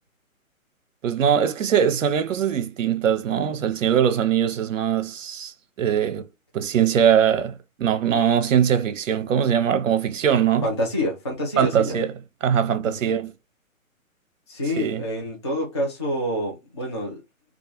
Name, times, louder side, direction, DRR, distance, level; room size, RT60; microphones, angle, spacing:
voice 1, 1.0-6.3 6.5-7.5 7.8-10.7 11.6-12.1 12.4-13.3 14.8-15.0, right 8 dB, 60° right, 0.6 m, -21 dB
voice 2, 10.6-12.0 12.8-13.0 14.5-17.2, left 1 dB, 20° left, 0.4 m, -27 dB
2.3 x 2.3 x 2.9 m
figure-of-eight pair, 135°, 42 cm